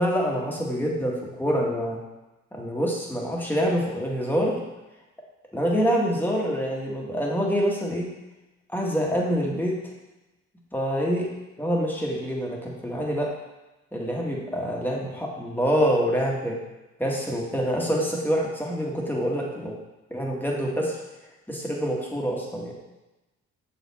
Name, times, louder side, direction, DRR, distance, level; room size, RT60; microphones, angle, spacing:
voice 1, 0.0-2.0 2.5-4.6 5.5-8.1 8.7-9.8 10.7-11.3 11.6-13.3 13.9-16.6 17.0-19.8 20.1-21.0 21.5-22.8, equal, 5° left, -3 dB, 1.5 m, -26 dB
6.5 x 4.2 x 4.2 m, 1.1 s
cardioid pair, 90°, 30 cm